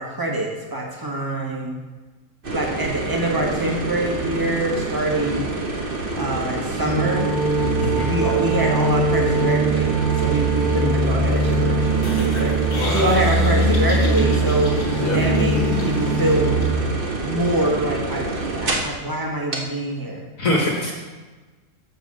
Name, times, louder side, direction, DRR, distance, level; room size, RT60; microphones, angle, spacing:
voice 1, 0.0-1.8 2.5-5.5 6.1-7.3 8.0-14.8 15.1-16.6 17.2-20.2 20.8-20.9, right 1 dB, 15° right, -1 dB, 1.4 m, -25 dB
sound 1, 2.4-19.0 19.5-19.6, right 2 dB, 40° right, 1.2 m, -28 dB
sound 2, 6.9-16.7, right 3 dB, 80° right, 1.9 m, -22 dB
voice 2, 7.8-8.1 12.7-13.1 14.9-15.2 20.4-20.9, left 1 dB, 65° left, -3 dB, 1.9 m, -23 dB
sound 3, 12.0-17.0, equal, 45° left, 2.1 m, -29 dB
8.0 x 5.4 x 6.4 m, 1.3 s
omnidirectional pair, 1.5 m